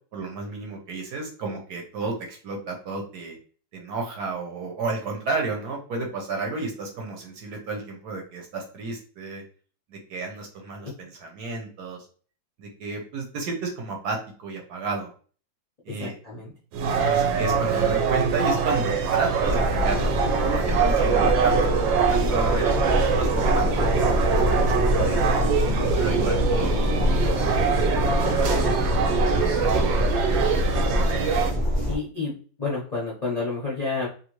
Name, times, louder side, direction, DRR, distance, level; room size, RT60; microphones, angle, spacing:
voice 1, 0.1-3.4 3.7-9.4 9.9-12.1 12.6-15.1 15.8-16.2 17.0-20.1 20.4-25.2 25.9-27.7 28.4-29.2 29.6-30.8, right 3 dB, 65° right, 1 dB, 1.2 m, -32 dB
voice 2, 16.0-16.5 31.9-32.3 32.6-34.1, left 4 dB, 45° left, -6 dB, 0.5 m, -29 dB
sound 1, 16.7-31.5, right 6 dB, 80° right, 1.3 m, -24 dB
sound 2, 19.4-32.0, left 1 dB, 25° right, 0.7 m, -25 dB
3.1 x 2.6 x 3.0 m, 0.41 s
omnidirectional pair, 2.0 m